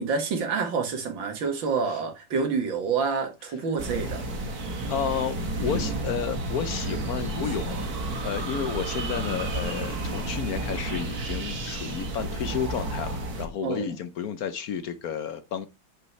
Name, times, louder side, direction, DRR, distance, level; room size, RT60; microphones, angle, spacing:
voice 1, 0.0-4.2 7.5-7.6 13.6-13.9, right 5 dB, 90° right, 2.4 m, -28 dB
sound 1, 3.8-13.5, right 2 dB, 55° right, 1.8 m, -31 dB
voice 2, 4.9-7.8 8.2-15.7, left 7 dB, 65° left, 1.0 m, -31 dB
8.0 x 6.4 x 3.1 m
omnidirectional pair, 2.0 m